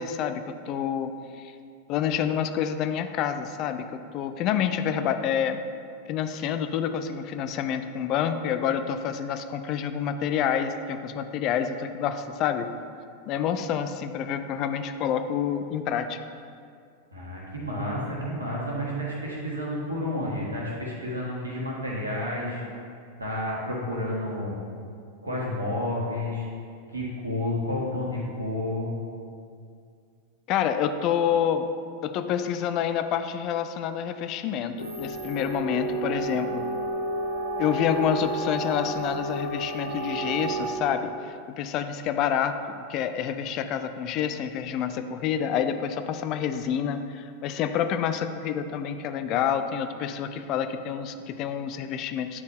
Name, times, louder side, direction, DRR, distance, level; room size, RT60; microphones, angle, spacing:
voice 1, 0.0-1.5 1.9-3.8 4.1-5.6 6.1-12.7 13.3-16.2 30.5-31.7 32.0-36.7 37.6-52.4, left 8 dB, 40° left, 9 dB, 0.3 m, -28 dB
voice 2, 17.1-22.6 23.2-24.5 25.2-26.5 26.9-28.9, left 1 dB, 80° right, -4 dB, 1.5 m, -30 dB
sound 1, 34.8-40.7, right 1 dB, 65° left, 1.6 m, -31 dB
9.4 x 4.1 x 3.4 m, 2.3 s
figure-of-eight pair, 90°, 0 cm